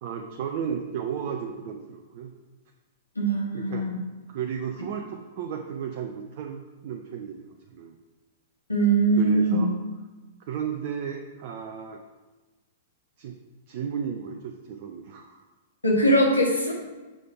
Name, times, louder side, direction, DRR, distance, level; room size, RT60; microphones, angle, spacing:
voice 1, 0.0-2.3 3.5-3.8 4.3-8.0 9.2-9.8 10.4-12.0 13.2-13.4 13.7-15.4, right 7 dB, 50° right, 3 dB, 0.5 m, -34 dB
voice 2, 3.1-4.0 8.7-9.6 15.8-16.7, right 2 dB, 90° left, -2 dB, 1.4 m, -21 dB
6.3 x 3.3 x 5.6 m, 1.2 s
figure-of-eight pair, 105°, 0 cm